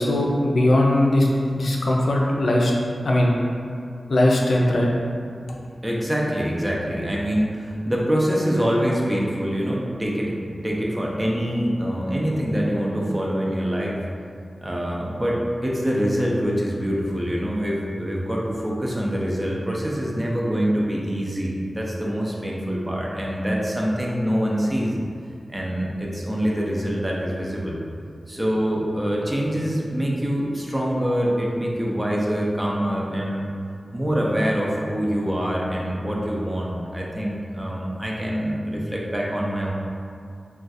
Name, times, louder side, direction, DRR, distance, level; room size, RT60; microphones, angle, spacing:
voice 1, 0.0-2.7 3.0-3.3 4.1-4.9, left 1 dB, 80° left, -2 dB, 0.4 m, -19 dB
voice 2, 5.8-14.0 14.6-24.9 25.5-27.8 28.3-33.5 33.9-39.7, equal, 20° right, -3 dB, 0.4 m, -25 dB
2.4 x 2.3 x 3.9 m, 2.4 s
wide cardioid pair, 95°, 0 cm